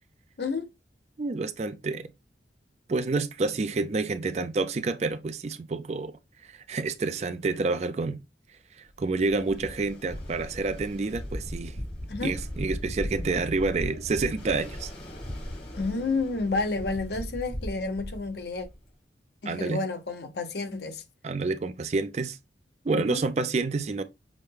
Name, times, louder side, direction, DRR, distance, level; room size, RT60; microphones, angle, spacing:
voice 1, 0.4-0.7 12.1-12.4 15.7-18.7 19.4-21.0 22.9-23.2, left 3 dB, 70° left, 0.7 m, -30 dB
voice 2, 1.2-2.1 2.9-6.1 6.4-8.2 8.8-11.8 12.2-14.9 19.5-19.8 21.2-22.4 22.8-24.0, right 3 dB, 40° right, 0.4 m, -28 dB
Ocean, 9.0-18.9, equal, 85° left, 2.9 m, -38 dB
6.1 x 2.1 x 3.3 m
head